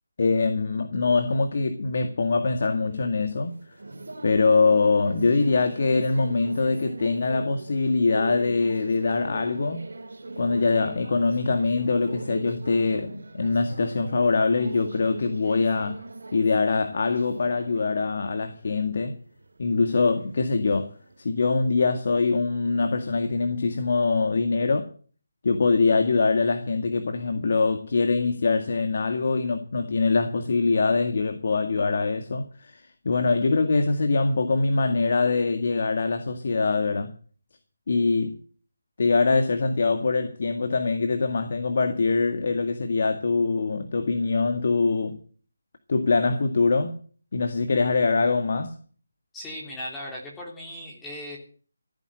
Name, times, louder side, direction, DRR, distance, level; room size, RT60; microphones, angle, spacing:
voice 1, 0.2-3.6 4.2-9.9 10.4-16.0 16.3-19.2 19.6-20.9 21.2-24.9 25.4-37.1 37.9-38.4 39.0-45.2 45.9-47.0 47.3-48.8, left 4 dB, 55° left, 1.9 m, -23 dB
sound 1, 2.9-21.3, right 2 dB, 75° right, 3.5 m, -40 dB
voice 2, 49.3-51.4, left 1 dB, 10° left, 3.3 m, -37 dB
15.5 x 9.3 x 7.8 m
figure-of-eight pair, 160°, 0 cm